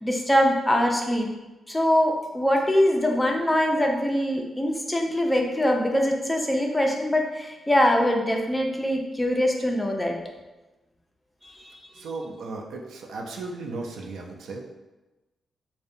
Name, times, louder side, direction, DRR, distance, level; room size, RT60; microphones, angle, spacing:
voice 1, 0.0-1.3 1.7-10.2 11.4-12.0, equal, 10° left, 1 dB, 0.3 m, -23 dB
voice 2, 12.0-14.7, right 3 dB, 90° right, 1 dB, 0.3 m, -36 dB
2.6 x 2.1 x 2.5 m, 1.1 s
cardioid pair, 110°, 0 cm